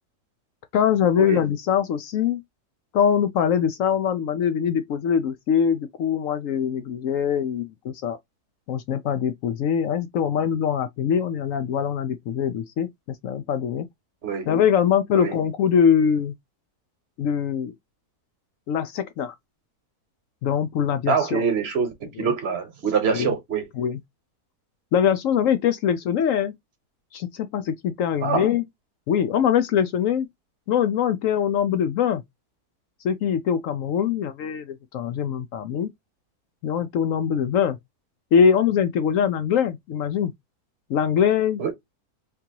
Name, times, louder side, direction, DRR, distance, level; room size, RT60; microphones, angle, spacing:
voice 1, 0.7-2.4 2.9-8.2 8.7-13.9 14.5-16.3 17.2-17.7 18.7-19.3 20.4-21.4 22.2-22.3 23.1-23.3 23.8-24.0 24.9-26.5 27.1-28.6 29.1-30.3 30.7-32.2 33.0-35.9 36.6-37.8 38.3-40.3 40.9-41.6, left 8 dB, 70° left, 0.9 m, -23 dB
voice 2, 21.1-23.7 28.2-28.5 41.6-41.7, right 5 dB, 45° right, 1.2 m, -24 dB
3.6 x 2.8 x 2.8 m
omnidirectional pair, 1.6 m